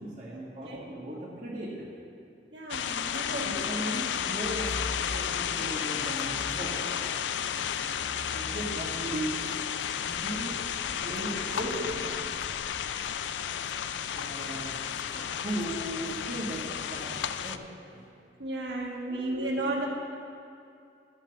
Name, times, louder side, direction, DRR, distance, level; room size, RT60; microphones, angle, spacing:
voice 1, 0.0-1.9 3.3-3.4 3.6-4.8 5.0-6.9 8.3-9.3 10.0-10.6 11.0-12.1 14.1-14.7 15.1-18.1 19.1-19.3 19.6-19.7, right 1 dB, 40° right, -9 dB, 1.8 m, -37 dB
voice 2, 2.5-3.6 5.7-5.9 6.8-6.9 10.4-10.6 11.3-11.4 11.7-11.8 14.3-14.7 17.1-17.2 18.4-19.9, right 2 dB, 85° right, -1 dB, 1.4 m, -34 dB
sound 1, 2.7-17.6, left 8 dB, 85° left, 0.4 m, -33 dB
sound 2, 4.2-5.6 6.1-13.1, left 1 dB, 50° left, 0.8 m, -45 dB
Bowed string instrument, 6.4-12.5, right 3 dB, 15° left, 0.9 m, -58 dB
12.5 x 5.8 x 6.9 m, 2.5 s
head